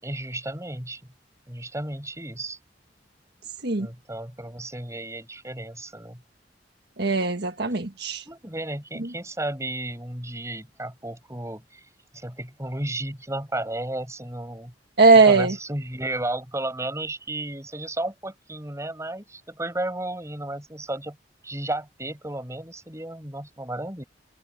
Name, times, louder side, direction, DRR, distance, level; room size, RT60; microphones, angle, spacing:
voice 1, 0.0-1.0 1.5-2.6 3.8-6.2 8.3-11.8 12.1-14.7 15.2-21.2 21.4-24.0, right 1 dB, 15° right, 6.7 m, -33 dB
voice 2, 7.0-8.2 15.0-15.5, right 3 dB, 65° right, 1.6 m, -18 dB
head